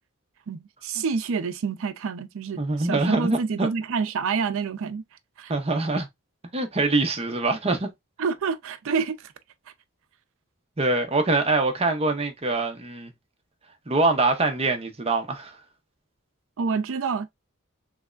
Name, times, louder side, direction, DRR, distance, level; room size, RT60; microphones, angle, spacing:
voice 1, 0.5-5.0 5.4-5.5 8.2-9.2 16.6-17.3, right 5 dB, 65° right, 0.5 m, -27 dB
voice 2, 2.6-3.7 5.5-6.1 6.5-7.9 10.8-13.1 13.9-15.6, right 2 dB, 30° right, 0.7 m, -24 dB
3.4 x 3.1 x 2.4 m
head